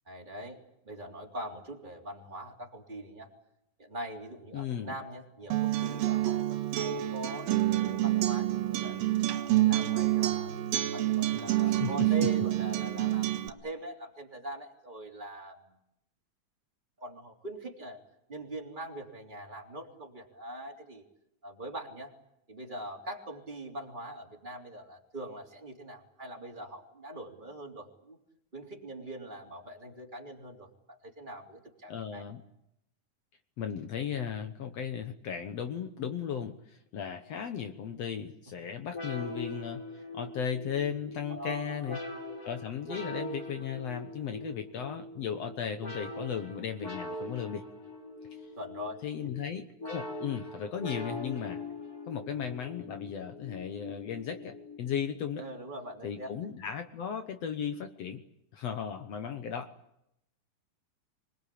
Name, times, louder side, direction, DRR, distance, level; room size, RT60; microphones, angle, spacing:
voice 1, 0.1-0.6 0.8-3.3 3.8-9.0 9.3-10.5 10.9-15.8 17.0-18.0 18.3-21.0 21.4-22.1 22.5-28.2 28.5-32.2 41.3-42.1 48.5-49.0 55.4-56.5, right 1 dB, 15° right, 0 dB, 3.3 m, -42 dB
voice 2, 4.5-4.9 11.6-12.3 31.9-32.4 33.6-39.8 40.1-42.0 42.4-47.6 49.0-51.6 52.1-55.4 56.0-58.2 58.5-59.7, left 8 dB, 65° left, 8 dB, 1.8 m, -36 dB
Acoustic guitar, 5.5-13.5, right 14 dB, 85° right, 3.0 m, -28 dB
sound 1, 38.9-55.1, left 2 dB, 25° left, 3.4 m, -42 dB
26.0 x 20.5 x 8.6 m, 0.81 s
omnidirectional pair, 4.0 m